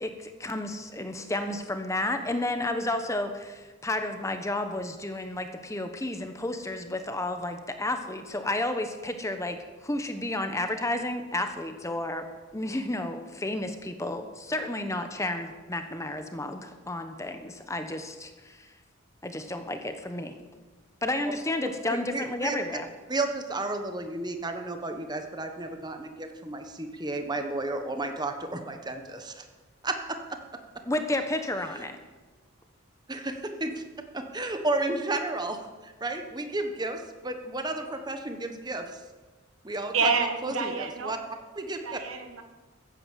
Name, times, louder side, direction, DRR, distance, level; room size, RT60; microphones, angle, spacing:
voice 1, 0.0-12.3 12.5-18.7 19.2-20.3 21.0-22.9 30.9-32.0, left 1 dB, 15° left, 7 dB, 1.0 m, -31 dB
voice 2, 22.1-22.6 23.1-29.4 29.8-30.4 31.7-31.8 33.1-33.8 34.1-39.0 39.6-40.1 40.4-41.2 41.6-42.0, right 2 dB, 20° right, 6 dB, 1.2 m, -32 dB
voice 3, 39.9-41.2 41.8-42.4, right 4 dB, 90° right, 6 dB, 1.6 m, -28 dB
14.5 x 8.9 x 7.5 m, 1.3 s
head